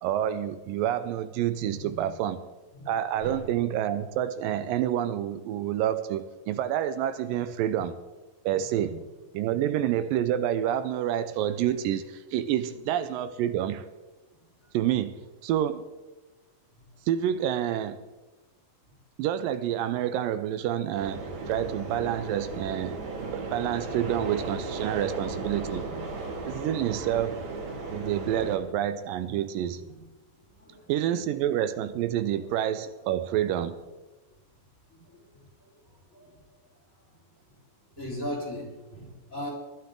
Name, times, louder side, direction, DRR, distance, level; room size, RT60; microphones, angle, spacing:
voice 1, 0.0-2.4 2.9-8.0 8.4-9.0 9.3-13.9 14.7-15.9 17.1-18.0 19.2-25.9 26.5-27.5 27.9-29.8 30.9-33.8, right 11 dB, 80° right, 2.3 m, -28 dB
voice 2, 1.7-2.1 2.7-2.9 3.2-3.4 8.9-9.0 9.6-9.7 12.7-12.9 25.9-26.1 26.4-27.2 29.8-29.9 30.6-30.9 35.1-35.4 36.1-36.3 38.0-39.5, equal, 25° left, 3.7 m, -39 dB
sound 1, 20.9-28.6, right 3 dB, 55° right, 3.2 m, -35 dB
20.5 x 12.0 x 3.8 m
omnidirectional pair, 4.0 m